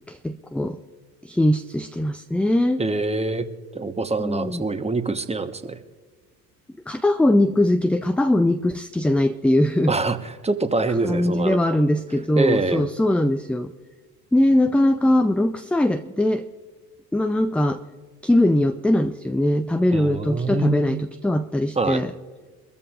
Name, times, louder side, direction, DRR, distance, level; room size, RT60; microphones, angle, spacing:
voice 1, 0.1-0.8 1.2-2.8 4.2-4.6 6.9-9.9 11.0-13.7 14.3-16.4 17.1-17.8 18.2-22.1, left 1 dB, 5° left, 8 dB, 0.4 m, -21 dB
voice 2, 2.8-3.5 3.7-5.8 9.9-11.6 12.4-12.9 19.9-20.9 21.8-22.0, right 3 dB, 15° right, 9 dB, 1.2 m, -24 dB
24.0 x 14.0 x 2.5 m, 1.4 s
figure-of-eight pair, 60°, 47 cm